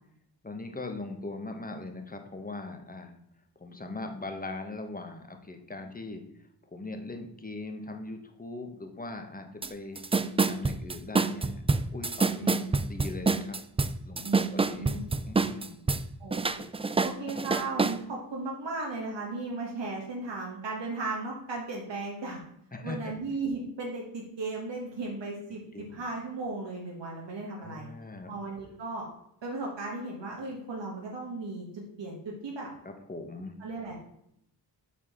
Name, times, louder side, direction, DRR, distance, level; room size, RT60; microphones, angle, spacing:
voice 1, 0.4-3.2 3.6-6.2 6.7-10.0 10.4-11.6 11.9-13.6 14.0-14.9 15.2-15.9 22.7-23.1 25.7-26.0 27.6-28.3 32.8-33.6, left 2 dB, 20° left, 5 dB, 1.2 m, -40 dB
sound 1, 9.6-9.7 10.0-16.0 16.3-18.0, right 4 dB, 15° right, 0.3 m, -26 dB
voice 2, 12.4-12.7 14.2-15.0 16.2-16.7 17.0-22.4 22.8-27.9 28.3-29.1 29.4-32.7 33.6-34.0, right 3 dB, 80° right, -2 dB, 1.7 m, -36 dB
7.3 x 4.7 x 5.6 m, 0.76 s
wide cardioid pair, 90°, 43 cm